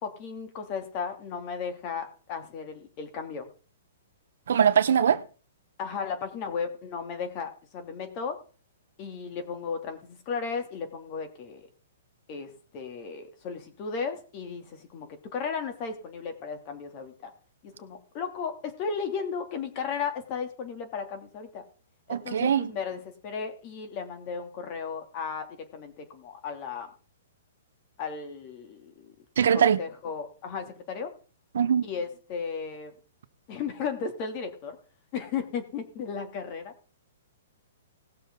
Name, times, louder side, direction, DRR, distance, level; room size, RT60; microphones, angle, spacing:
voice 1, 0.0-3.5 5.8-8.4 9.0-11.6 12.3-17.3 17.6-21.6 22.1-25.5 25.7-26.9 28.0-29.1 29.5-31.1 31.8-32.9 33.5-34.8 35.1-36.7, left 6 dB, 30° left, 2.7 m, -35 dB
voice 2, 4.5-5.2 22.1-22.7 29.4-29.8 31.5-31.9, right 8 dB, 70° right, 1.0 m, -22 dB
19.0 x 6.8 x 3.8 m
hypercardioid pair, 160°, 0 cm